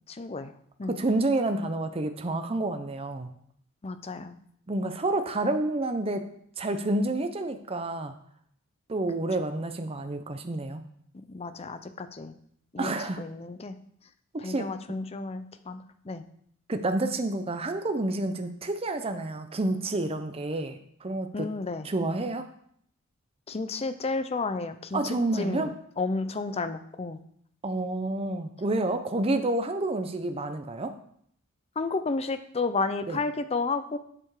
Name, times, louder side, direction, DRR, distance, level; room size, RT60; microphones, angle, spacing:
voice 1, 0.1-0.5 0.8-0.9 3.8-4.3 11.1-12.4 12.7-13.8 14.4-16.2 21.3-21.9 23.5-25.0 25.4-25.7 26.0-27.2 31.8-34.0, left 3 dB, 25° left, 10 dB, 0.5 m, -32 dB
voice 2, 0.9-3.3 4.7-6.3 6.6-8.1 8.9-10.8 12.8-13.2 14.4-14.7 16.7-21.5 21.8-22.5 24.9-25.7 27.6-30.9 33.1-33.2, right 2 dB, 25° right, 7 dB, 0.6 m, -29 dB
7.5 x 6.8 x 4.8 m, 0.67 s
head